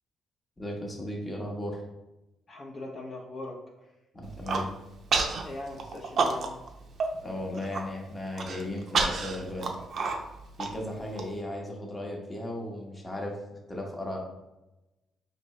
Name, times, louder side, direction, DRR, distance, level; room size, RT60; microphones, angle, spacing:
voice 1, 0.6-1.8 4.1-4.7 7.2-9.7 10.6-13.4 13.7-14.2, left 1 dB, 15° left, -1 dB, 0.9 m, -36 dB
voice 2, 2.5-3.6 5.4-6.6, left 2 dB, 45° left, -3 dB, 0.8 m, -40 dB
Human voice, 4.2-4.7 5.1-5.4 5.8-6.7 7.0-7.1 7.5-7.8 8.4-11.2, right 4 dB, 60° right, 0.5 m, -29 dB
4.3 x 2.7 x 3.1 m, 0.96 s
cardioid pair, 90°, 0 cm